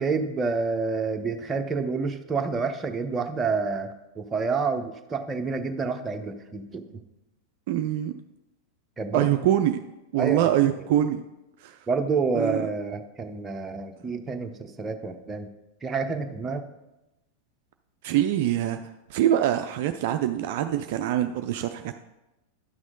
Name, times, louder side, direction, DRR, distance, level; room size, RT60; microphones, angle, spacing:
voice 1, 0.0-6.8 9.0-9.3 10.2-10.7 11.9-15.5 15.8-16.6, right 4 dB, 20° right, 5 dB, 0.9 m, -28 dB
voice 2, 7.7-8.1 9.1-9.8 10.1-11.2 11.6-11.8 12.3-12.7 18.0-18.8 19.1-21.9, right 11 dB, 55° right, 7 dB, 0.4 m, -24 dB
10.5 x 6.2 x 3.8 m, 0.97 s
figure-of-eight pair, 90°, 0 cm